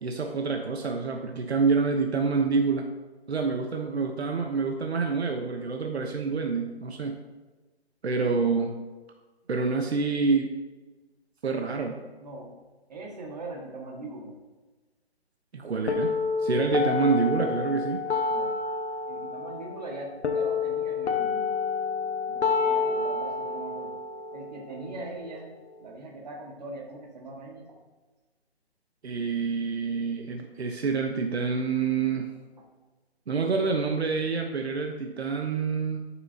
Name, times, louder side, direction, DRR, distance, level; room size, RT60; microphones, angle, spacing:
voice 1, 0.0-2.9 3.3-7.2 8.0-8.8 9.5-10.5 11.4-12.0 15.5-18.0 29.0-32.3 33.3-36.1, right 4 dB, 75° right, 3 dB, 1.0 m, -27 dB
voice 2, 12.2-12.5 12.9-14.3 18.2-18.6 19.1-21.5 22.3-24.0 24.3-27.8, right 2 dB, 40° right, -1 dB, 1.6 m, -41 dB
sound 1, 15.9-25.9, left 5 dB, 85° left, 1.1 m, -29 dB
11.0 x 6.1 x 2.7 m, 1.2 s
hypercardioid pair, 175°, 33 cm